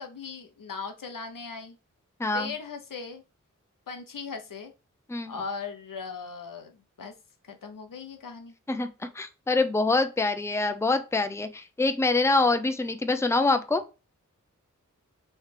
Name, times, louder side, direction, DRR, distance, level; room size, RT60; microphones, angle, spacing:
voice 1, 0.0-1.8 2.3-3.2 3.9-4.7 5.2-7.1 7.4-8.5, left 5 dB, 90° left, 5 dB, 0.9 m, -38 dB
voice 2, 2.2-2.5 5.1-5.3 8.7-8.9 9.1-13.8, left 3 dB, 10° left, 8 dB, 0.5 m, -25 dB
3.3 x 3.2 x 4.8 m, 0.29 s
wide cardioid pair, 65°, 32 cm